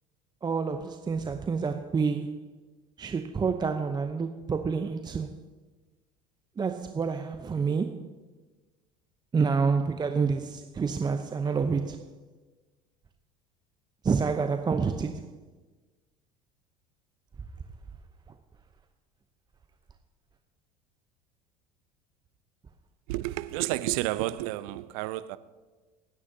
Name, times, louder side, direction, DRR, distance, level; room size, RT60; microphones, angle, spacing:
voice 1, 0.4-2.4 3.0-5.3 6.6-8.0 9.3-12.0 14.0-15.2, right 5 dB, 20° right, 0.8 m, -28 dB
voice 2, 23.1-25.4, right 17 dB, 65° right, 0.7 m, -31 dB
28.0 x 9.7 x 2.8 m
hypercardioid pair, 70°, 20 cm